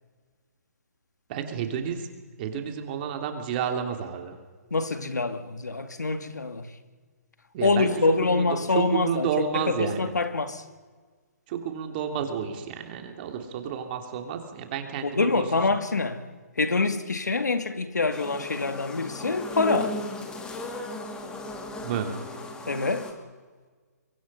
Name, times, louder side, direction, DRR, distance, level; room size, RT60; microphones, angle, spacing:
voice 1, 1.3-2.1 2.4-4.4 7.5-7.9 8.2-10.1 11.5-15.4 21.8-22.1, right 8 dB, 35° right, 3.1 m, -30 dB
voice 2, 4.7-6.7 7.6-9.3 9.5-10.6 15.0-16.2 16.6-20.0 22.7-23.1, left 3 dB, 85° left, 2.1 m, -25 dB
sound 1, 18.1-23.1, left 2 dB, 10° left, 2.3 m, -36 dB
25.5 x 23.5 x 5.7 m
hypercardioid pair, 145°, 9 cm